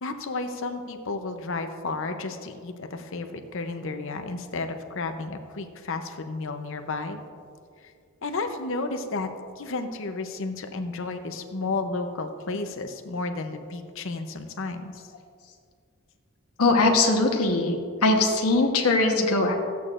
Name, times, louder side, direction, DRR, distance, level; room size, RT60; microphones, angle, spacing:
voice 1, 0.0-7.2 8.2-9.3 9.6-15.0, left 3 dB, 60° left, 7 dB, 0.7 m, -32 dB
voice 2, 16.6-17.8 18.0-19.5, left 2 dB, 85° left, 2 dB, 1.1 m, -21 dB
14.0 x 8.3 x 2.5 m, 2.2 s
head